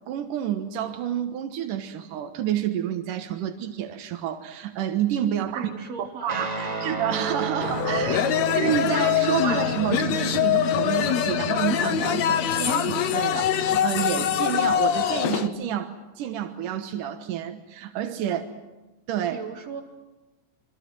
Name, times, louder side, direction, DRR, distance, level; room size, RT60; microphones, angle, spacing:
voice 1, 0.1-5.7 6.0-18.4 19.1-19.4, right 10 dB, 90° right, 6 dB, 2.8 m, -29 dB
voice 2, 5.5-6.9 8.1-8.5 18.3-18.4 19.3-19.8, right 6 dB, 55° right, 1 dB, 4.3 m, -39 dB
Guitar, 6.3-15.0, right 3 dB, 15° right, 1.5 m, -34 dB
sound 1, 7.6-15.5, left 10 dB, 65° left, 2.1 m, -24 dB
27.0 x 25.0 x 7.8 m, 1.1 s
omnidirectional pair, 3.7 m